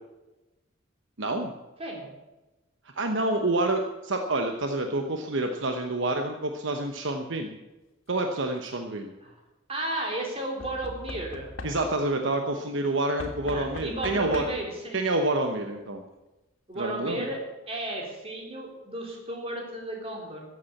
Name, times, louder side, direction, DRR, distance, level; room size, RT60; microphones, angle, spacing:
voice 1, 1.2-1.5 2.9-7.6 8.1-9.1 11.6-14.5 14.9-16.0 16.7-17.3, right 2 dB, 65° right, 4 dB, 1.1 m, -28 dB
voice 2, 1.8-2.1 9.2-9.4 9.7-11.5 13.4-15.0 16.7-17.4 17.7-20.4, right 1 dB, 30° right, 0 dB, 3.8 m, -34 dB
Knock / Wood, 8.4-8.9 10.6-12.1 13.2-14.8 15.8-15.9 16.1-16.2, left 1 dB, 90° left, 2.4 m, -40 dB
14.5 x 8.5 x 8.5 m, 1.0 s
head